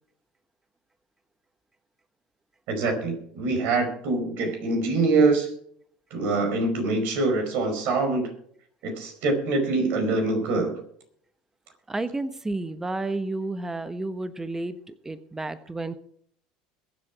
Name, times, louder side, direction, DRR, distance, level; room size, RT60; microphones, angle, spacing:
voice 1, 2.7-5.5 6.1-8.3 8.8-10.7, right 3 dB, 60° right, 5 dB, 4.9 m, -24 dB
voice 2, 11.9-15.9, right 2 dB, 15° right, 12 dB, 1.1 m, -31 dB
22.0 x 7.7 x 4.8 m, 0.63 s
hypercardioid pair, 80°, 3 cm